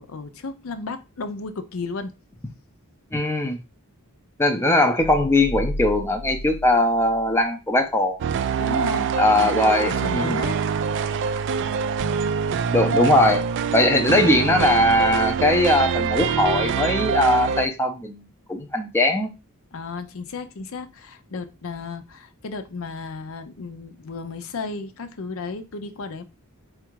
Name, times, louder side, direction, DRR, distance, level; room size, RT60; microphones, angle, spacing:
voice 1, 0.0-2.1 8.6-9.1 9.4-10.6 19.7-26.2, left 4 dB, 65° left, 0.6 m, -33 dB
voice 2, 3.1-3.6 4.4-8.2 9.2-10.4 12.7-13.4 13.7-18.2 18.5-19.3, left 1 dB, 10° left, 0.5 m, -20 dB
sound 1, 5.0-7.6 7.9-8.0, equal, 90° left, 1.1 m, -33 dB
sound 2, 8.2-17.7, right 6 dB, 55° right, 0.3 m, -24 dB
4.4 x 2.5 x 4.5 m
head